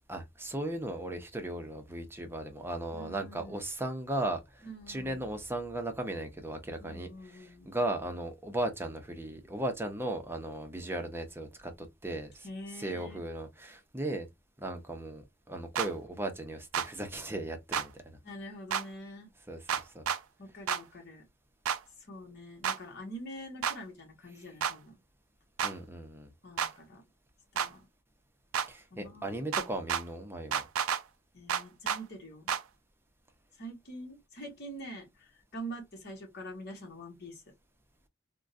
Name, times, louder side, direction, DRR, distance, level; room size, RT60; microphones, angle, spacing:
voice 1, 0.1-12.5 12.7-14.3 14.6-18.2 19.5-19.7 19.9-20.1 25.6-26.3 28.7-30.6, right 1 dB, 10° right, 0.6 m, -37 dB
voice 2, 2.9-3.6 4.6-5.2 6.8-7.8 12.4-13.2 18.2-19.3 20.4-21.2 22.1-24.9 26.4-27.0 27.5-27.8 28.9-29.5 31.3-32.5 33.6-37.4, equal, 55° left, 1.2 m, -45 dB
sound 1, 15.8-15.9 16.7-16.9 17.7-17.9 18.7-18.8 19.7-20.2 20.7-20.8 21.7-21.8 22.6-22.8 23.6-23.8 24.6-24.8 25.6-25.7 26.6-26.7 27.6-27.7 28.5-28.7 29.5-30.0 30.5-31.0 31.5-32.0 32.5-32.6, right 8 dB, 85° right, 0.4 m, -30 dB
3.5 x 2.2 x 2.5 m
head